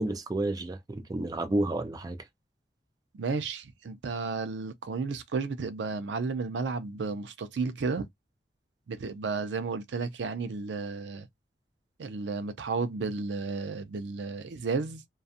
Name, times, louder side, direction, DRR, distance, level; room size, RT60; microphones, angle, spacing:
voice 1, 0.0-2.2, right 2 dB, 20° right, 0.4 m, -30 dB
voice 2, 3.1-8.1 8.9-11.3 12.0-15.0, right 4 dB, 85° right, 0.4 m, -33 dB
2.4 x 2.3 x 2.5 m
head